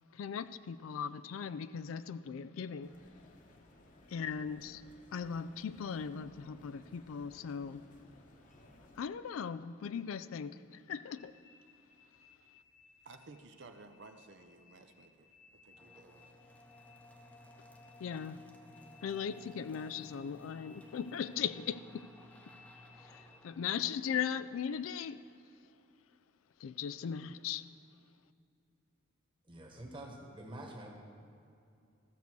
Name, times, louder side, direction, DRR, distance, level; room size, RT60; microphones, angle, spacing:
voice 1, 0.1-2.9 4.1-4.8 5.1-7.8 9.0-11.3 18.0-18.4 19.0-22.0 23.0-25.2 26.6-27.6, left 7 dB, 85° left, 15 dB, 0.4 m, -38 dB
sound 1, 2.8-9.0, left 1 dB, 40° left, 1.0 m, -60 dB
sound 2, 11.2-23.5, left 6 dB, 70° left, 1.3 m, -64 dB
voice 2, 13.0-16.3, right 3 dB, 60° right, 7 dB, 0.6 m, -55 dB
sound 3, 15.7-25.3, left 1 dB, 5° left, 0.7 m, -58 dB
voice 3, 29.5-30.9, right 1 dB, 25° right, 1 dB, 1.3 m, -47 dB
13.5 x 6.8 x 4.6 m, 2.6 s
head